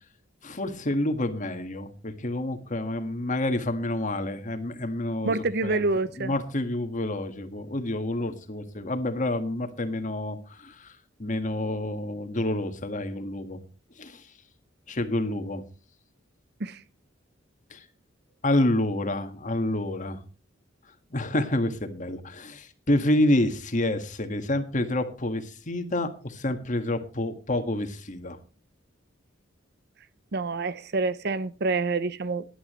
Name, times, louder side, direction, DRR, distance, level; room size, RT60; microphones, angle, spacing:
voice 1, 0.4-5.8 6.2-10.9 11.2-13.6 14.0-14.3 14.9-15.6 17.7-17.8 18.4-20.2 21.1-28.4, left 1 dB, 40° left, 1.7 m, -28 dB
voice 2, 5.2-6.3 16.6-16.8 30.3-32.4, right 3 dB, 60° right, 0.8 m, -27 dB
18.0 x 11.0 x 3.1 m
head